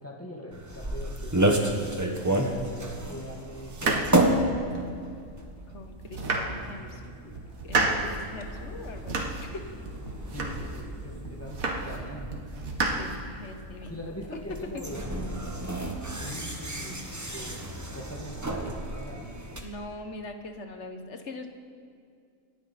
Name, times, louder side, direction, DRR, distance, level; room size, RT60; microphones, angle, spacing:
voice 1, 0.0-1.8 2.2-4.0 6.2-7.4 10.3-12.7 13.9-15.5 16.2-19.4, equal, 10° left, -1 dB, 1.8 m, -42 dB
sound 1, 0.5-19.6, right 1 dB, 15° right, 1.1 m, -32 dB
sound 2, 3.7-5.0 5.5-5.6 6.0-7.0 7.4-8.2 8.6-9.5 9.9-10.9 11.3-12.0 12.3-13.6, right 3 dB, 75° right, 1.9 m, -31 dB
voice 2, 5.7-7.0 7.6-9.6 12.9-13.9 14.3-14.4 19.6-21.5, left 2 dB, 55° left, 6 dB, 1.4 m, -41 dB
27.0 x 11.0 x 4.2 m, 2.3 s
omnidirectional pair, 1.5 m